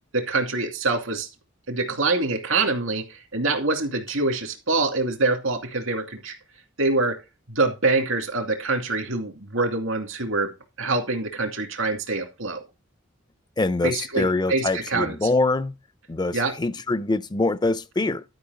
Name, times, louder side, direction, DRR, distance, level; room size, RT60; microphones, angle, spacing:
voice 1, 0.1-1.3 1.7-6.3 6.8-7.2 7.5-10.5 10.8-12.6 13.8-15.2 16.3-16.5, right 3 dB, 85° right, 2.5 m, -25 dB
voice 2, 13.6-15.7 16.1-18.2, left 2 dB, 20° left, 0.5 m, -24 dB
12.0 x 5.5 x 4.1 m
head